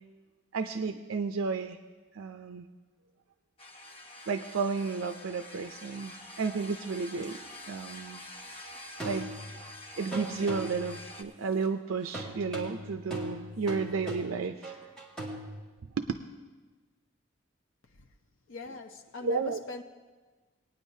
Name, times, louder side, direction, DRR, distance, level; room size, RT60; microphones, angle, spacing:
voice 1, 0.5-1.8 2.1-2.7 4.3-7.4 7.7-8.2 9.0-9.3 10.0-14.8 16.0-16.1 18.6-18.8 19.2-19.6, right 4 dB, 85° right, 0.5 m, -32 dB
sound 1, 3.6-11.2, left 1 dB, 30° left, 0.8 m, -47 dB
sound 2, 7.2-7.3 9.0-9.7 10.1-11.0 12.1-15.5, right 1 dB, 5° left, 1.9 m, -39 dB
voice 2, 18.5-19.8, left 3 dB, 75° left, 0.7 m, -42 dB
20.0 x 9.5 x 2.7 m
head